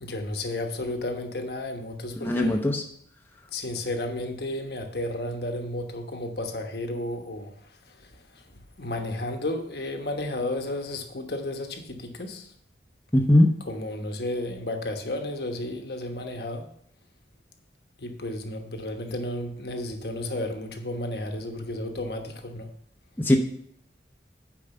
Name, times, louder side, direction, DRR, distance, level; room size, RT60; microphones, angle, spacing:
voice 1, 0.0-2.6 3.5-8.5 8.8-12.5 13.7-16.7 18.0-22.7, left 1 dB, 60° left, 1.2 m, -33 dB
voice 2, 2.2-2.8 13.1-13.6 23.2-23.4, left 1 dB, 10° left, 0.8 m, -20 dB
9.0 x 4.9 x 6.8 m
head